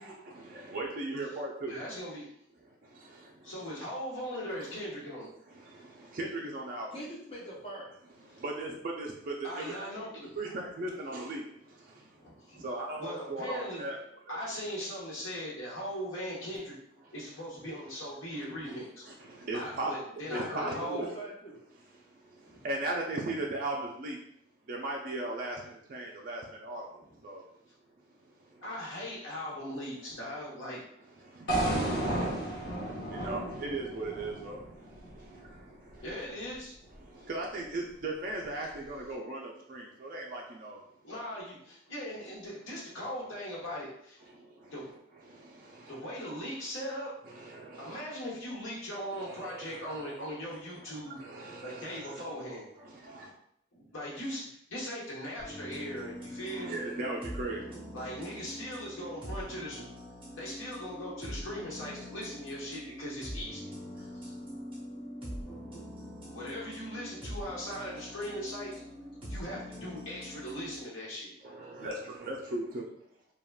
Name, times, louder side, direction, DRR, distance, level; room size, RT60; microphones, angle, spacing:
voice 1, 0.0-1.8 2.6-3.7 4.6-4.7 5.5-6.9 8.2-10.1 10.4-14.4 17.0-17.1 18.3-18.7 19.0-21.1 21.8-24.2 24.7-26.9 27.2-27.5 28.0-28.7 30.7-36.3 36.9-40.9 44.2-44.7 45.2-46.0 47.2-47.9 48.5-48.6 48.9-52.4 52.8-53.3 56.4-57.8 71.4-72.8, right 2 dB, 45° right, -1 dB, 0.3 m, -39 dB
voice 2, 1.6-2.3 3.4-5.3 9.4-10.3 12.2-12.6 13.0-13.9 14.3-16.8 17.1-19.0 19.5-21.1 22.5-22.6 28.6-30.8 32.4-32.5 36.0-36.7 41.0-44.2 44.7-44.9 45.9-47.1 47.8-51.2 51.6-52.7 53.7-56.8 57.9-59.8 60.4-64.3 65.4-65.6 66.2-68.7 69.3-71.3, equal, 85° left, -5 dB, 1.1 m, -39 dB
voice 3, 6.9-8.0 20.3-21.6 56.9-57.2 71.7-71.9, right 1 dB, 30° left, -4 dB, 0.6 m, -43 dB
sound 1, 31.5-35.6, right 1 dB, 55° left, 1.0 m, -33 dB
sound 2, 55.4-70.8, equal, 25° right, 0.7 m, -43 dB
3.4 x 2.2 x 2.3 m, 0.72 s
head